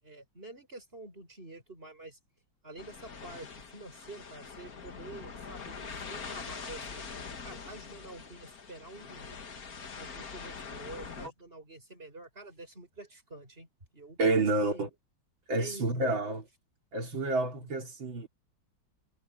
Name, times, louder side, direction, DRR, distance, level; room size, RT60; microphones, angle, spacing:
voice 1, 0.0-2.2 2.6-7.0 7.4-9.3 10.0-13.7 13.9-14.9 15.6-16.2 17.6-17.7, right 2 dB, 30° right, 7.2 m, -47 dB
sound 1, 2.8-11.3, left 5 dB, 50° left, 2.1 m, -44 dB
voice 2, 14.2-14.9 15.5-16.4 16.9-18.3, right 2 dB, 85° right, 4.2 m, -29 dB
omnidirectional pair, 2.1 m